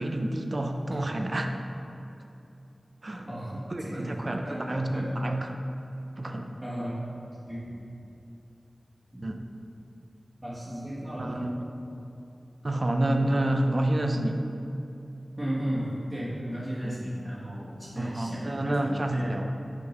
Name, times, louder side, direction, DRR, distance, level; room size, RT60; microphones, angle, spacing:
voice 1, 0.0-1.5 3.0-3.3 3.7-5.6 6.2-6.6 9.2-9.4 11.2-11.5 12.6-14.5 16.8-16.9 18.0-19.5, right 1 dB, 50° right, 4 dB, 0.5 m, -28 dB
voice 2, 3.0-5.1 6.6-7.0 7.4-7.8 9.1-9.3 10.4-11.6 15.4-18.5 18.8-19.3, equal, 20° right, -10 dB, 1.5 m, -35 dB
6.2 x 3.7 x 5.8 m, 2.8 s
wide cardioid pair, 45°, 0 cm